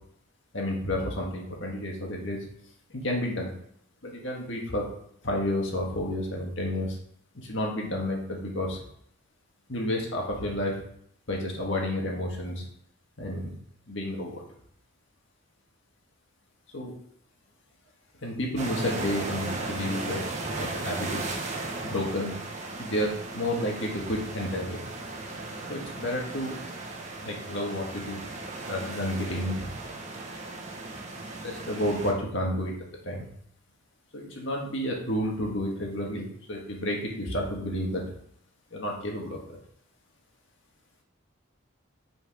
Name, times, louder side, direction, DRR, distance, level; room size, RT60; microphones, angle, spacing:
voice 1, 0.5-2.4 2.9-3.5 4.0-4.9 5.2-7.0 7.3-8.8 9.7-10.8 11.3-12.6 13.2-13.6 13.9-14.4 16.7-16.9 18.2-20.2 20.6-21.3 21.8-22.3 22.8-24.8 25.7-26.6 27.2-28.2 28.7-29.7 31.4-32.8 33.0-33.3 34.1-38.0 38.7-39.4, left 1 dB, 60° left, -1 dB, 1.8 m, -30 dB
sound 1, 18.6-32.1, right 2 dB, 35° right, 1.1 m, -36 dB
6.0 x 5.1 x 5.0 m, 0.68 s
head